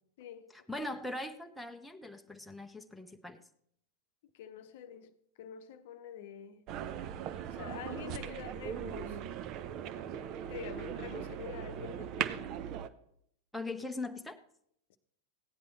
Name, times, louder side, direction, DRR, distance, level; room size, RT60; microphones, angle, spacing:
voice 1, 0.2-0.5 4.3-5.1 5.4-6.6 7.5-9.2 10.5-12.5 14.9-15.0, left 9 dB, 55° left, 0.8 m, -46 dB
voice 2, 0.7-3.4 13.5-14.4, left 2 dB, 5° left, 0.8 m, -40 dB
sound 1, 6.7-12.9, right 9 dB, 40° right, 0.7 m, -39 dB
16.0 x 10.0 x 4.3 m
figure-of-eight pair, 90°, 0 cm